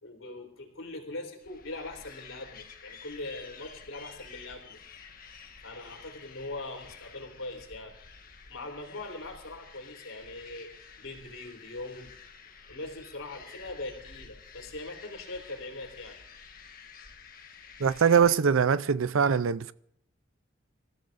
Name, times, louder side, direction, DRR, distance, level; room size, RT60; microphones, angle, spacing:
voice 1, 0.0-4.8 5.6-7.9 8.5-10.7 11.0-12.1 12.7-16.2, left 2 dB, 85° left, 3.6 m, -41 dB
sound 1, 1.4-18.4, left 5 dB, 45° left, 1.5 m, -51 dB
voice 2, 17.8-19.7, right 6 dB, 85° right, 0.5 m, -23 dB
28.5 x 15.0 x 2.6 m
head